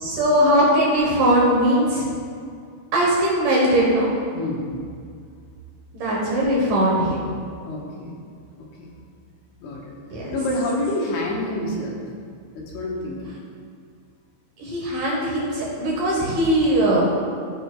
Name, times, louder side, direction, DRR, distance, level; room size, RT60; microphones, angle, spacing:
voice 1, 0.0-2.1 2.9-4.1 5.9-7.2 10.1-10.2 14.6-17.0, right 1 dB, 70° right, -4 dB, 2.0 m, -20 dB
voice 2, 4.3-4.7 7.7-8.2 8.6-8.9 9.6-9.9 10.3-12.0 12.5-13.4, left 1 dB, 75° left, -2 dB, 3.2 m, -28 dB
15.0 x 6.0 x 2.2 m, 2.2 s
omnidirectional pair, 5.4 m